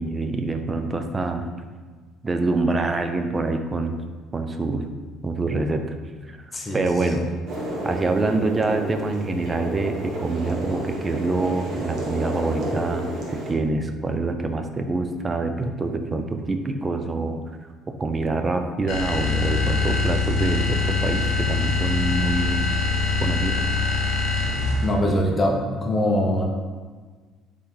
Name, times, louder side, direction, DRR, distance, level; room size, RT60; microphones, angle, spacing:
voice 1, 0.0-1.5 2.2-4.0 4.3-4.9 5.2-5.9 6.3-6.4 6.7-7.3 7.8-17.4 17.9-22.7 23.2-23.6, right 3 dB, 25° right, 6 dB, 0.4 m, -25 dB
voice 2, 6.5-7.2 24.8-26.4, left 1 dB, 25° left, -1 dB, 0.8 m, -23 dB
sound 1, 7.5-13.5, right 1 dB, 65° right, 1.0 m, -31 dB
sound 2, 18.9-25.0, left 4 dB, 70° left, 0.7 m, -23 dB
4.1 x 3.3 x 3.7 m, 1.5 s
cardioid pair, 100°, 0 cm